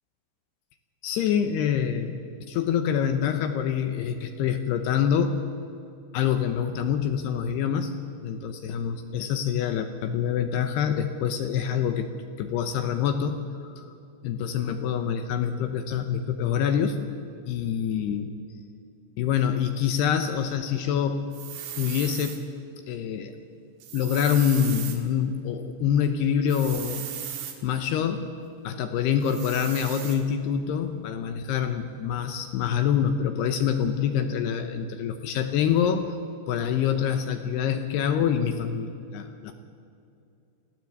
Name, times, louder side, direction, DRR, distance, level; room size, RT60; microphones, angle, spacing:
voice 1, 1.0-2.2 2.5-5.4 6.1-12.1 12.4-13.8 14.2-17.0 17.5-18.3 19.2-21.3 21.8-22.5 22.9-23.4 23.9-27.1 27.6-28.3 28.6-36.2 36.5-39.5, left 8 dB, 80° left, 7 dB, 2.5 m, -26 dB
sound 1, 21.3-22.4 23.8-25.0 26.5-27.6 29.2-30.2, right 10 dB, 65° right, 3.4 m, -37 dB
25.0 x 15.0 x 7.8 m, 2.6 s
omnidirectional pair, 5.7 m